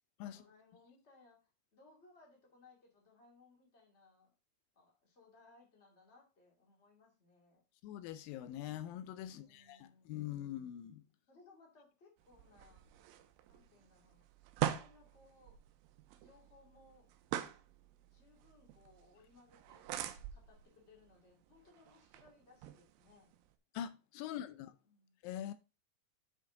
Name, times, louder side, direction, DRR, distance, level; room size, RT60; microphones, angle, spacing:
voice 1, 0.2-4.3 4.7-7.6 9.2-10.7 11.3-12.9 13.5-14.2 14.6-15.6 16.2-17.1 18.1-19.9 20.3-23.3 24.2-24.4 24.8-25.1, left 3 dB, 20° left, 2.2 m, -65 dB
voice 2, 7.8-11.0 23.7-24.7 25.2-25.5, left 11 dB, 85° left, 2.3 m, -43 dB
sound 1, 12.2-23.5, right 12 dB, 85° right, 2.4 m, -45 dB
7.3 x 5.5 x 3.7 m
omnidirectional pair, 4.0 m